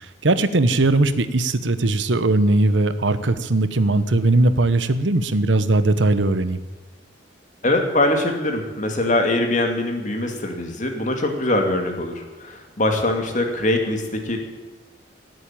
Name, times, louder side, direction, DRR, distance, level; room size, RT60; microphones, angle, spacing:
voice 1, 0.2-6.6, right 2 dB, 90° right, 12 dB, 1.0 m, -19 dB
voice 2, 7.6-14.4, left 1 dB, 45° left, 3 dB, 2.4 m, -22 dB
17.5 x 8.0 x 9.0 m, 1.2 s
head